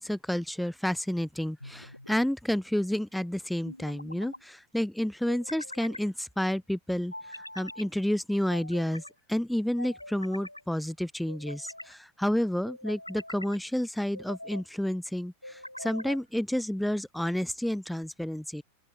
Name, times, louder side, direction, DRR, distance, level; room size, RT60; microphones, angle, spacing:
voice 1, 0.0-9.0 9.3-18.6, equal, ahead, 0.9 m, -30 dB
sound 1, 1.6-2.3 3.7-4.4 5.3-6.1 7.1-7.9 8.5-9.1 9.8-10.6 11.3-11.9 12.7-13.6 14.1-14.7 15.4-16.2, left 1 dB, 85° left, 1.3 m, -43 dB
open air
figure-of-eight pair, 90°, 0 cm